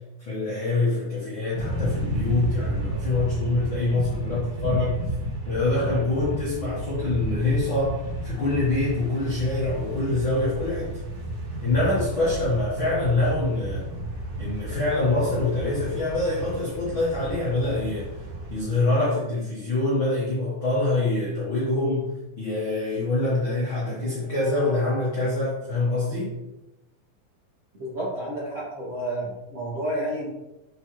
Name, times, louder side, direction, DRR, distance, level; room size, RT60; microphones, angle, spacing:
voice 1, 0.2-5.0 5.4-11.0 11.6-13.9 14.4-18.2 18.5-26.3, left 2 dB, 70° left, -8 dB, 1.1 m, -25 dB
sound 1, 1.5-18.6, right 1 dB, 65° right, 1.7 m, -32 dB
voice 2, 27.8-30.3, right 1 dB, 85° right, -8 dB, 0.7 m, -30 dB
8.0 x 4.1 x 3.1 m, 0.96 s
omnidirectional pair, 4.5 m